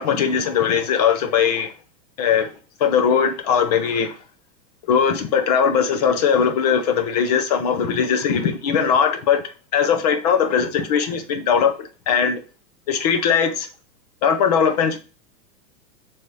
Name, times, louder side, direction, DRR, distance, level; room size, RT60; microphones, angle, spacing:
voice 1, 0.0-1.7 2.2-2.5 2.8-4.1 4.9-9.4 9.7-11.7 12.1-12.4 12.9-13.7 14.2-15.0, left 7 dB, 25° left, 0.5 m, -19 dB
6.6 x 3.5 x 4.8 m
supercardioid pair, 165°, 50 cm